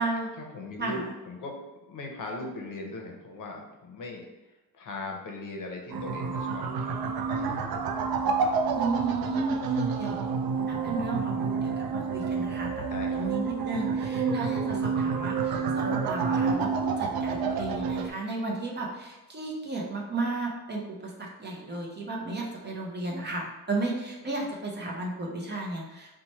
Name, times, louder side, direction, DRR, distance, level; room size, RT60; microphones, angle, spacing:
voice 1, 0.4-1.6 1.9-7.0 7.3-8.1 12.9-13.3, left 2 dB, 60° left, 1 dB, 0.6 m, -39 dB
sound 1, 5.9-18.1, right 5 dB, 80° right, 0.5 m, -29 dB
voice 2, 8.7-10.2 10.7-26.1, right 3 dB, 30° right, -1 dB, 0.5 m, -33 dB
3.0 x 2.1 x 4.0 m, 1.1 s
wide cardioid pair, 160°, 36 cm